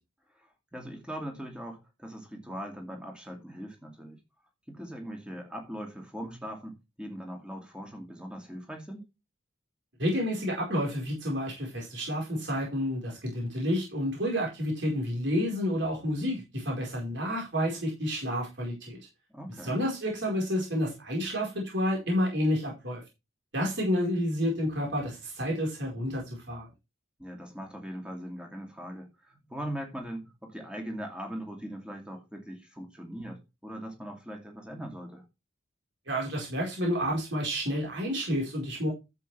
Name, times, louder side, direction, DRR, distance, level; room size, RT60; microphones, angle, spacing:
voice 1, 0.3-4.2 4.7-9.1 19.3-19.8 27.2-35.2, equal, 5° right, 2.5 m, -40 dB
voice 2, 10.0-19.0 19.6-23.0 23.5-26.7 36.1-38.9, equal, 60° right, 4.6 m, -30 dB
11.5 x 7.8 x 3.4 m
head